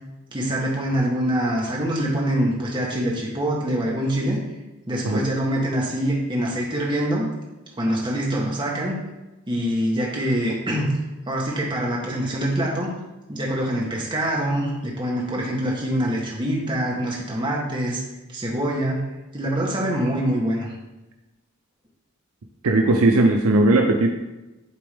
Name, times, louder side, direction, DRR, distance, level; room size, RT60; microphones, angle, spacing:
voice 1, 0.3-4.4 4.9-7.3 7.8-9.0 9.5-10.9 11.3-12.9 13.3-18.0 18.3-19.1 19.3-20.7, right 1 dB, 20° right, -3 dB, 1.1 m, -24 dB
voice 2, 22.6-24.1, right 2 dB, 80° right, 3 dB, 0.5 m, -17 dB
8.4 x 3.5 x 3.4 m, 1.0 s
head